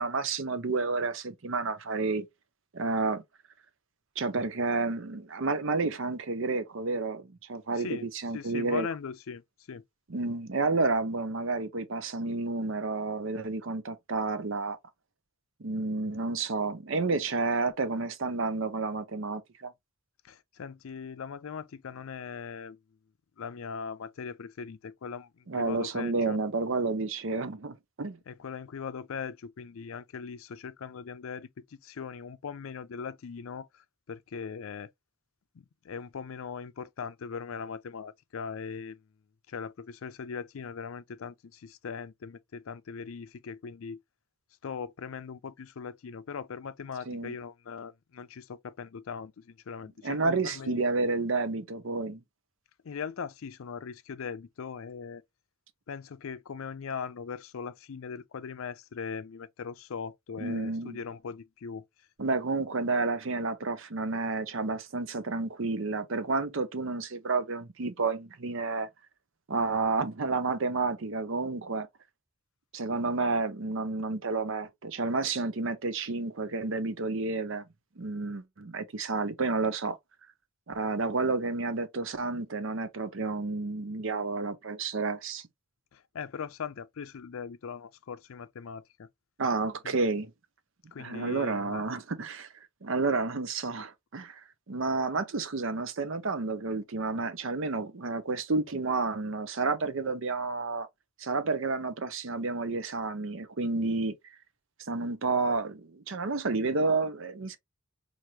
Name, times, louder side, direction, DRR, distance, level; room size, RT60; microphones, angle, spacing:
voice 1, 0.0-2.3 2.7-3.2 4.2-8.9 10.1-14.8 15.6-19.7 25.5-28.2 47.1-47.3 50.0-52.2 60.4-61.0 62.2-68.9 69.5-71.9 72.7-77.6 78.0-80.0 80.7-85.5 89.4-90.3 91.0-92.5 92.8-94.4 94.7-100.9 101.2-104.1 104.9-107.6, right 3 dB, 60° right, 0.7 m, -30 dB
voice 2, 7.7-8.1 8.3-9.4 9.7-9.8 20.2-22.8 23.4-26.4 28.3-34.9 35.5-39.0 39.5-44.0 44.6-50.8 52.8-55.2 55.9-61.8 85.9-89.1 89.8-89.9 90.9-91.8, left 6 dB, 70° left, 0.4 m, -40 dB
4.6 x 2.6 x 2.7 m
head